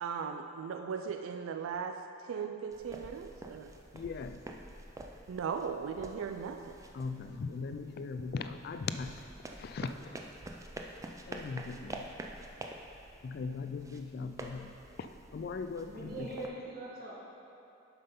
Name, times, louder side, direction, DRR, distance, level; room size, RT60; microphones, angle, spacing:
voice 1, 0.0-3.7 5.3-6.8, right 6 dB, 80° right, 0.3 m, -38 dB
sound 1, 2.7-16.5, right 1 dB, 15° right, 0.4 m, -48 dB
voice 2, 3.9-4.4 6.9-9.1 9.6-10.2 11.3-12.0 13.2-14.7 15.3-16.3, left 4 dB, 50° left, 0.3 m, -39 dB
voice 3, 15.9-17.1, right 2 dB, 50° right, 1.7 m, -41 dB
7.7 x 5.6 x 5.4 m
head